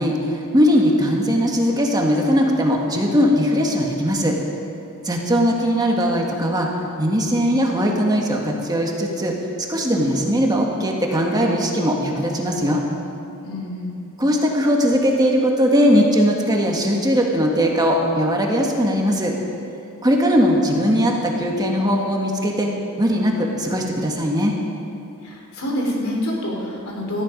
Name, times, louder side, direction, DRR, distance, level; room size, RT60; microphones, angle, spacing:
voice 1, 0.0-4.4 5.0-6.7 7.0-9.3 9.7-12.8 14.2-19.3 20.0-22.7 23.0-24.5, equal, 20° right, 0 dB, 1.6 m, -19 dB
voice 2, 13.4-14.0 25.2-27.2, left 1 dB, 70° left, -1 dB, 3.7 m, -27 dB
18.0 x 14.0 x 5.2 m, 2.7 s
head